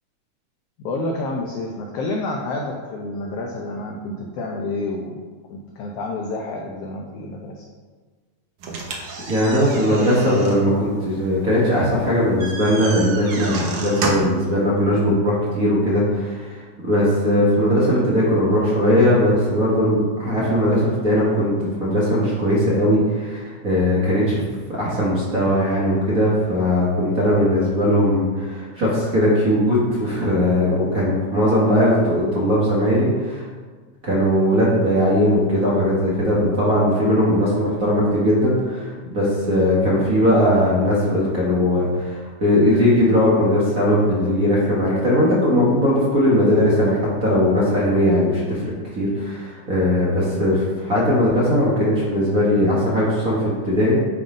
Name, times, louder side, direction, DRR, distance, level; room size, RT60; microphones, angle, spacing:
voice 1, 0.8-5.2 5.5-7.6, left 2 dB, 80° left, 0 dB, 1.4 m, -29 dB
sound 1, 8.6-14.5, right 3 dB, 75° right, 1.0 m, -31 dB
voice 2, 9.3-24.4 24.7-33.4 34.0-48.6 48.9-54.0, equal, 40° right, -8 dB, 1.3 m, -19 dB
9.3 x 3.8 x 5.1 m, 1.4 s
omnidirectional pair, 3.6 m